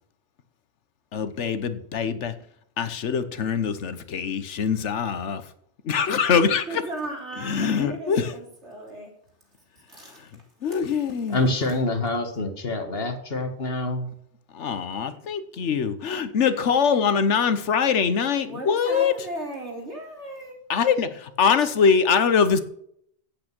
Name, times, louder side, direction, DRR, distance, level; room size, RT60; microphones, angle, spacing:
voice 1, 1.1-2.3 2.8-5.4 5.8-6.8 7.4-8.4 10.6-11.5 14.5-19.1 20.7-22.6, left 6 dB, 90° left, 12 dB, 1.3 m, -23 dB
voice 2, 6.7-9.1 9.9-10.2 18.4-20.6, right 2 dB, 75° right, -1 dB, 3.6 m, -36 dB
voice 3, 11.3-14.1, left 2 dB, 60° left, 6 dB, 1.9 m, -26 dB
9.0 x 8.5 x 6.0 m, 0.68 s
omnidirectional pair, 1.2 m